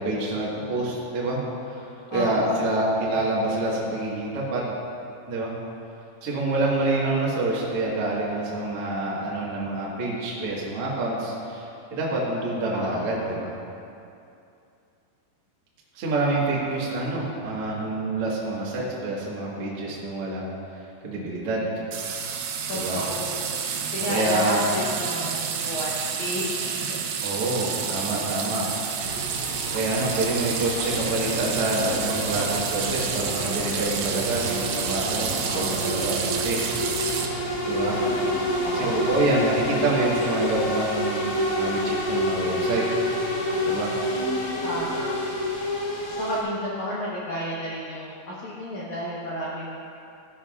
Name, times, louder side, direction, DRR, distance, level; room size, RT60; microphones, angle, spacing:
voice 1, 0.0-1.9 2.1-4.6 5.3-5.5 6.2-13.5 15.9-20.5 21.0-21.7 22.7-23.0 24.1-24.6 27.2-28.8 29.7-36.6 37.7-38.1 38.7-41.3 41.6-42.8 43.6-43.9, right 2 dB, 60° right, -5 dB, 1.5 m, -27 dB
voice 2, 2.1-2.7 7.0-7.5 12.7-13.2 22.7-23.5 23.9-27.0 27.3-27.4 35.4-36.0 38.6-39.3 44.6-45.3 46.2-49.8, equal, 80° left, -8 dB, 1.7 m, -32 dB
sound 1, 21.9-37.3, right 6 dB, 75° right, 2.4 m, -30 dB
sound 2, 29.0-46.4, equal, 60° left, 1.4 m, -29 dB
14.5 x 11.0 x 2.5 m, 2.6 s
omnidirectional pair, 5.3 m